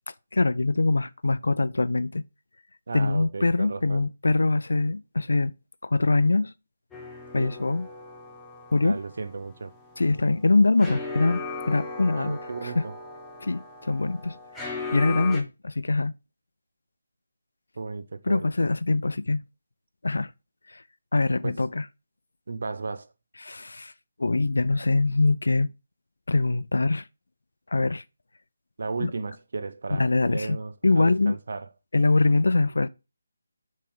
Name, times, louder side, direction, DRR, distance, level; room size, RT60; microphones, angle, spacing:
voice 1, 0.3-2.2 2.9-5.5 5.8-6.5 7.3-7.9 8.7-9.0 10.0-12.9 13.4-14.4 14.9-16.1 18.2-19.4 20.0-20.3 20.7-20.8 21.1-21.9 23.4-23.9 24.2-25.7 26.3-27.1 27.7-28.0 29.0-29.1 29.9-30.6 30.8-31.4 31.9-32.9, left 3 dB, 70° left, 0.4 m, -23 dB
voice 2, 2.9-4.0 7.4-7.6 8.8-9.7 12.2-12.9 17.8-18.5 21.4-21.6 22.5-23.1 28.8-31.7, right 4 dB, 60° right, 0.7 m, -34 dB
sound 1, 6.9-15.4, left 3 dB, 5° left, 0.9 m, -38 dB
6.9 x 3.3 x 5.1 m
figure-of-eight pair, 155°, 0 cm